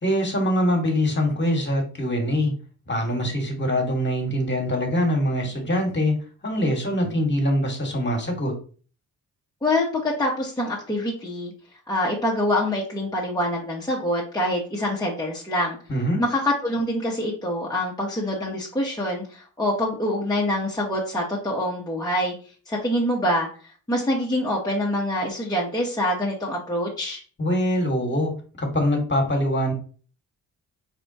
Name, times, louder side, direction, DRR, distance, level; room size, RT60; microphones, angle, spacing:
voice 1, 0.0-2.5 2.9-6.1 6.4-8.5 15.9-16.2 27.4-28.3 28.6-29.7, equal, 25° left, 2 dB, 1.6 m, -23 dB
voice 2, 9.6-11.5 11.9-15.8 16.2-22.3 22.7-27.2, left 1 dB, 10° left, -4 dB, 1.2 m, -25 dB
4.2 x 3.4 x 2.8 m, 0.40 s
supercardioid pair, 50°, 40 cm